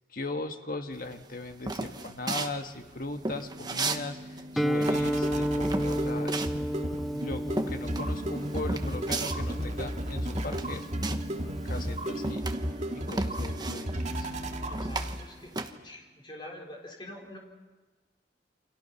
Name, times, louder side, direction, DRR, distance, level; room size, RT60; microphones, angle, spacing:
voice 1, 0.1-6.4 6.7-6.9 7.1-10.9 11.6-12.5 12.9-14.3, left 2 dB, 55° left, 6 dB, 1.7 m, -38 dB
sound 1, 1.1-4.1 4.3-11.4 11.7-15.7, right 2 dB, 25° right, 1.2 m, -35 dB
sound 2, 2.8-15.5, equal, 40° right, 2.2 m, -35 dB
Guitar, 4.6-12.3, equal, ahead, 0.7 m, -33 dB
voice 2, 14.7-17.4, left 1 dB, 25° left, 0 dB, 4.4 m, -45 dB
29.5 x 25.5 x 5.8 m, 1.2 s
head